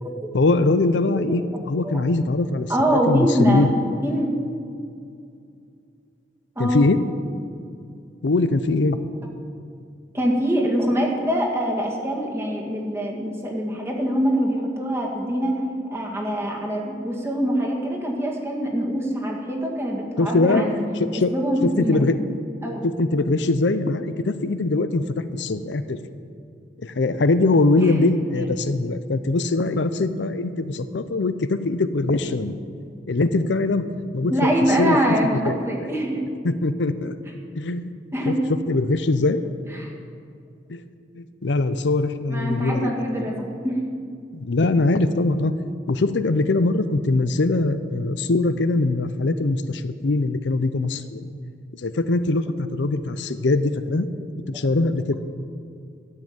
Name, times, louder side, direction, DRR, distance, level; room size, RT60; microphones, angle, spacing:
voice 1, 0.3-2.7 3.1-3.7 6.6-7.0 8.2-9.0 20.2-20.6 21.0-21.3 21.6-22.2 22.8-25.0 25.3-26.0 26.8-32.6 33.1-33.8 34.1-34.5 34.8-35.1 35.4-35.5 36.4-37.2 37.6-37.9 38.3-38.4 38.7-39.4 40.7-40.8 41.1-43.2 44.3-45.5 45.9-51.3 51.8-54.1 54.5-55.2, left 2 dB, 75° left, 11 dB, 0.6 m, -22 dB
voice 2, 2.7-3.7 4.0-4.3 6.6-6.9 10.1-15.6 15.9-20.8 21.3-22.0 22.6-22.9 27.8-28.0 34.3-36.3 38.1-38.4 39.7-39.9 42.3-43.8, equal, 15° right, -1 dB, 2.0 m, -24 dB
13.0 x 7.8 x 9.0 m, 2.4 s
head